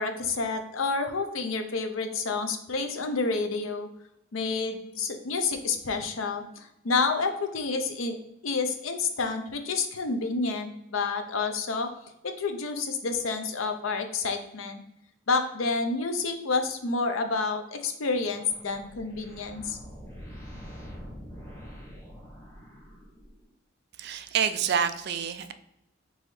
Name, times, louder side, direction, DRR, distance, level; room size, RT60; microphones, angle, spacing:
voice 1, 0.0-3.9 4.3-6.4 6.8-8.2 8.4-11.9 12.2-14.8 15.3-19.8, left 4 dB, 85° left, 6 dB, 0.6 m, -29 dB
sound 1, 18.0-23.5, equal, 10° left, 1.3 m, -45 dB
voice 2, 24.0-25.5, right 7 dB, 55° right, 10 dB, 0.4 m, -27 dB
3.9 x 3.9 x 3.2 m, 0.83 s
head